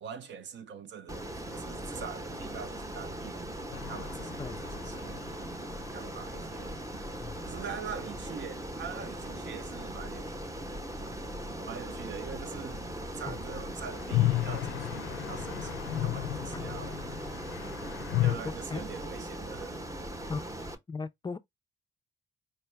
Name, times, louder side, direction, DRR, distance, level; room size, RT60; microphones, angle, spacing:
voice 1, 0.0-3.6 3.9-5.4 5.9-6.8 7.4-10.3 11.6-12.9 13.2-17.0 18.2-19.8, right 7 dB, 65° right, 0.8 m, -43 dB
Ocean, 1.1-20.7, right 1 dB, 15° right, 0.8 m, -39 dB
sound 1, 3.7-7.5 7.8-7.9 8.0-8.1 13.2-18.4, left 15 dB, 80° left, 0.4 m, -34 dB
voice 2, 20.9-21.4, left 4 dB, 20° left, 0.4 m, -36 dB
4.6 x 2.2 x 3.1 m
cardioid pair, 90°, 20 cm